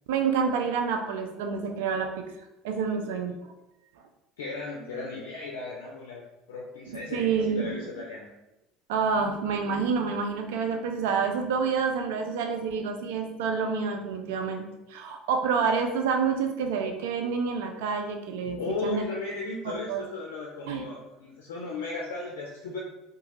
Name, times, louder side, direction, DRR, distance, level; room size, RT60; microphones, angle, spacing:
voice 1, 0.1-2.2 2.6-3.3 6.9-7.9 8.9-19.0 19.7-20.0 20.7-20.8, right 5 dB, 80° right, 4 dB, 0.3 m, -28 dB
voice 2, 4.4-8.3 18.6-22.8, left 3 dB, 85° left, -2 dB, 0.4 m, -36 dB
2.8 x 2.3 x 3.0 m, 0.94 s
hypercardioid pair, 80°, 0 cm